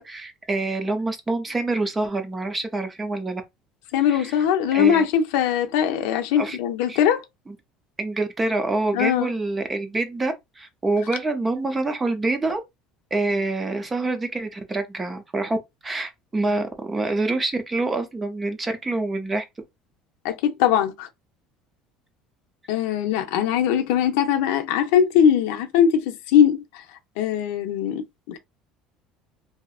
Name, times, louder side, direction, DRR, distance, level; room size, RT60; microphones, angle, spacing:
voice 1, 0.0-3.4 4.1-4.4 4.7-5.1 6.4-6.6 6.9-7.0 7.5-7.6 8.0-12.6 13.1-15.6 15.8-19.4, right 2 dB, 15° right, 0.5 m, -26 dB
voice 2, 3.9-7.2 8.9-9.3 20.2-21.1 22.7-26.6 27.2-28.4, left 9 dB, 85° left, 0.5 m, -21 dB
2.7 x 2.4 x 2.3 m
cardioid pair, 160°, 0 cm